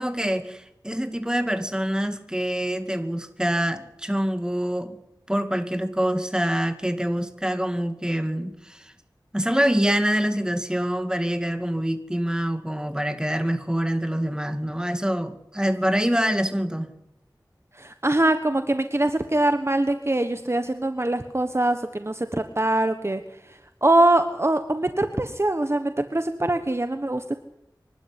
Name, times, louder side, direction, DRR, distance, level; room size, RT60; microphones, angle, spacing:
voice 1, 0.0-5.0 5.3-8.9 9.3-16.9, equal, 10° right, 8 dB, 2.3 m, -25 dB
voice 2, 17.7-27.3, right 1 dB, 35° right, 8 dB, 1.3 m, -23 dB
25.5 x 12.0 x 9.9 m, 0.82 s
wide cardioid pair, 45°, 8 cm